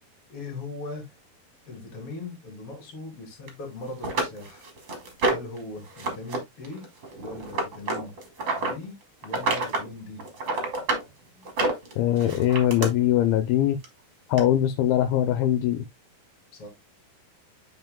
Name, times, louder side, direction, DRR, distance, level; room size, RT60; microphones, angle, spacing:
voice 1, 0.3-1.1 1.7-4.7 5.3-6.8 7.2-8.1 8.6-9.0 9.2-10.2 16.5-16.7, left 2 dB, 40° left, 3.8 m, -39 dB
sound 1, 3.5-3.6 4.0-5.6 6.0-6.4 6.6-8.7 9.2-9.9 10.2-11.0 11.4-12.9 13.8-13.9 14.4-14.5, right 2 dB, 35° right, 2.4 m, -27 dB
voice 2, 12.0-13.8 14.3-15.9, left 11 dB, 85° left, 2.6 m, -22 dB
9.5 x 5.5 x 2.2 m
omnidirectional pair, 4.3 m